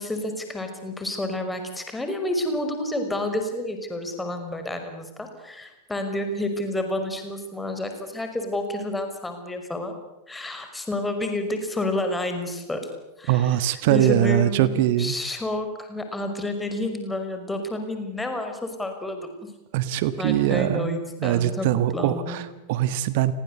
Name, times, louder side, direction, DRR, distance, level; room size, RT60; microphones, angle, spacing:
voice 1, 0.0-10.0 10.3-12.8 13.2-13.6 13.9-19.3 20.2-22.5, left 1 dB, 10° left, 6 dB, 5.5 m, -30 dB
voice 2, 13.3-15.2 19.7-23.3, right 12 dB, 50° right, 13 dB, 1.4 m, -22 dB
30.0 x 23.5 x 8.3 m, 0.96 s
figure-of-eight pair, 90°, 0 cm